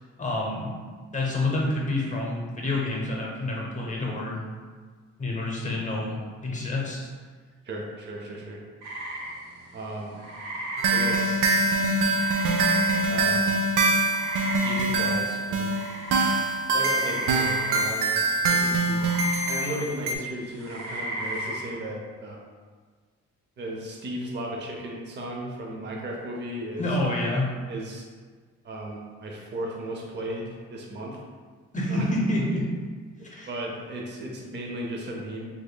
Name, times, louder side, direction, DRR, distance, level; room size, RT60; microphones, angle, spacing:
voice 1, 0.2-0.7 1.1-4.4 5.2-7.1 26.8-27.5 31.7-32.7 33.3-33.5, left 2 dB, 25° left, -2 dB, 0.8 m, -28 dB
voice 2, 7.6-8.6 9.7-10.2 10.9-11.5 13.1-13.6 14.6-15.8 16.7-18.2 18.5-19.0 19.5-22.4 23.6-26.8 27.7-28.0 28.6-31.2 31.9-32.0 33.5-35.5, right 1 dB, 35° right, -1 dB, 0.6 m, -35 dB
sound 1, 8.8-13.5 13.8-21.7, right 1 dB, 70° right, 0.9 m, -35 dB
sound 2, 10.8-20.2, right 2 dB, 90° right, 0.5 m, -24 dB
3.5 x 3.4 x 2.3 m, 1.5 s
cardioid pair, 90°, 30 cm